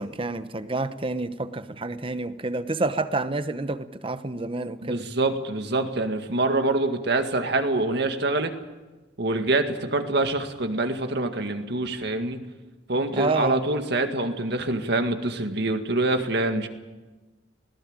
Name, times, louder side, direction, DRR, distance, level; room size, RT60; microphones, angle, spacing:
voice 1, 0.0-5.0 13.1-13.6, right 2 dB, 30° right, 0.9 m, -28 dB
voice 2, 4.8-8.5 9.2-12.4 12.9-16.7, right 2 dB, 65° right, 2.0 m, -25 dB
19.5 x 18.0 x 8.9 m
head